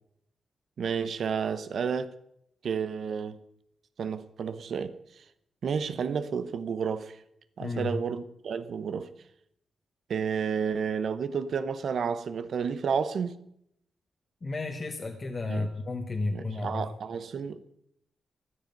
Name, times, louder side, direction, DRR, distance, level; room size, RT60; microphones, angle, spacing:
voice 1, 0.8-2.1 2.6-3.4 4.0-4.9 5.6-7.2 7.6-9.1 10.1-13.4 15.5-15.7 16.3-17.7, right 6 dB, 60° right, 0.9 m, -31 dB
voice 2, 7.6-7.9 14.4-16.8, left 3 dB, 30° left, 1.4 m, -32 dB
14.5 x 13.0 x 5.4 m
wide cardioid pair, 140°, 0 cm